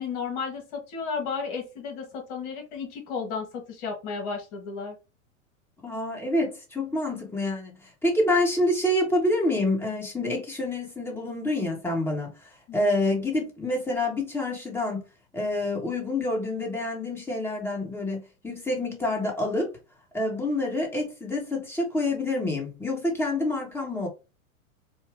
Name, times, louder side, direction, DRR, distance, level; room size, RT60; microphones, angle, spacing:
voice 1, 0.0-4.9 12.7-12.9, left 5 dB, 45° left, 1.6 m, -33 dB
voice 2, 5.8-12.3 12.7-15.0 15.3-19.7 20.1-24.1, left 1 dB, 5° left, 1.5 m, -27 dB
4.5 x 2.4 x 3.4 m
hypercardioid pair, 100°, 42 cm